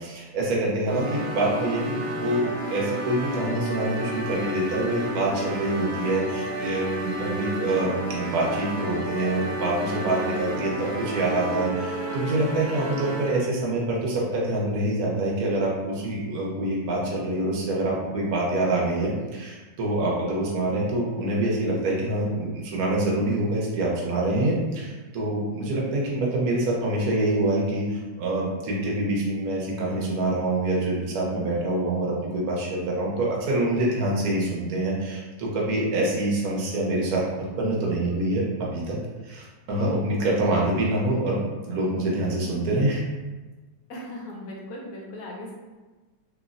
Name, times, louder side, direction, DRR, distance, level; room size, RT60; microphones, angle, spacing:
voice 1, 0.0-37.2 37.6-38.4 38.7-39.0 39.3-43.0, right 1 dB, 60° right, -3 dB, 1.1 m, -26 dB
sound 1, 0.9-13.5, right 1 dB, 90° right, 1.5 m, -31 dB
voice 2, 43.9-45.5, left 1 dB, 70° left, -3 dB, 0.9 m, -38 dB
3.0 x 2.8 x 2.4 m, 1.2 s
omnidirectional pair, 2.0 m